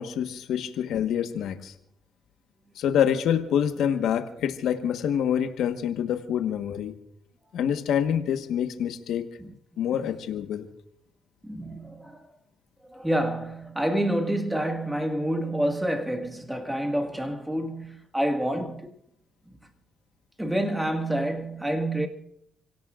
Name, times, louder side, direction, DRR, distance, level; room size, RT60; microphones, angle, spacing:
voice 1, 0.0-1.7 2.8-6.9 7.5-9.3 9.8-10.7, left 9 dB, 80° left, 1.3 m, -26 dB
voice 2, 11.4-12.3 12.8-19.0 19.5-19.7 20.4-22.1, right 1 dB, 5° right, 1.8 m, -28 dB
28.5 x 17.5 x 2.5 m
cardioid pair, 90°, 0 cm